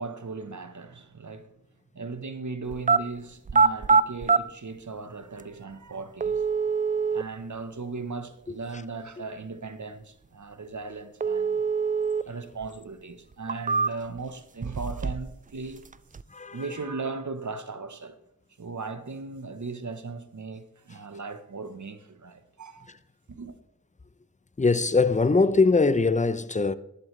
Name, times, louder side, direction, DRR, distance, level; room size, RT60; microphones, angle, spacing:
voice 1, 0.0-1.5 1.9-6.4 7.1-11.6 12.2-15.8 16.5-18.2 18.6-22.9 23.3-23.5, right 4 dB, 55° right, 1.2 m, -37 dB
sound 1, 2.7-3.0 3.5-4.4 5.4-5.5 6.2-7.2 11.2-12.2 12.6-12.7 13.3-14.2 14.6-15.3 15.6-16.2, right 5 dB, 25° right, 0.4 m, -24 dB
voice 2, 16.3-16.6 24.6-26.7, left 3 dB, 20° left, 0.7 m, -22 dB
11.5 x 11.5 x 3.3 m
cardioid pair, 45°, 35 cm